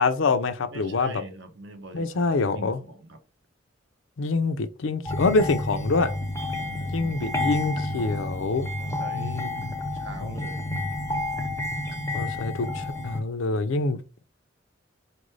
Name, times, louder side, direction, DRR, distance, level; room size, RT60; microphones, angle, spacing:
voice 1, 0.0-1.2 1.9-2.8 4.2-6.1 6.9-8.7 9.1-9.7 10.2-10.3 12.1-14.2, left 3 dB, 80° left, 0.5 m, -26 dB
voice 2, 0.7-3.2 6.6-7.9 8.8-9.5 9.8-10.7 11.8-11.9, right 2 dB, 65° right, 0.8 m, -44 dB
sound 1, 5.0-13.2, left 1 dB, 15° left, 0.6 m, -30 dB
4.5 x 2.5 x 3.2 m
head